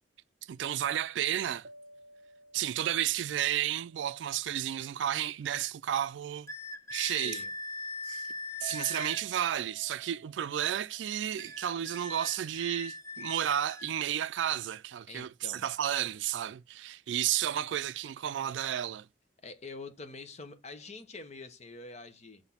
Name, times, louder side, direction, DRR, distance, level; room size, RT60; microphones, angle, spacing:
voice 1, 0.4-1.7 2.5-6.5 6.9-7.4 8.0-8.3 8.6-19.1, right 10 dB, 80° right, 0.3 m, -32 dB
sound 1, 1.6-5.2 8.6-11.6, right 3 dB, 55° right, 0.9 m, -54 dB
sound 2, 6.5-9.2 11.4-13.9, left 2 dB, 15° left, 0.6 m, -41 dB
voice 2, 7.1-7.5 15.1-15.7 19.4-22.4, left 3 dB, 40° left, 0.9 m, -46 dB
6.0 x 3.2 x 5.7 m
head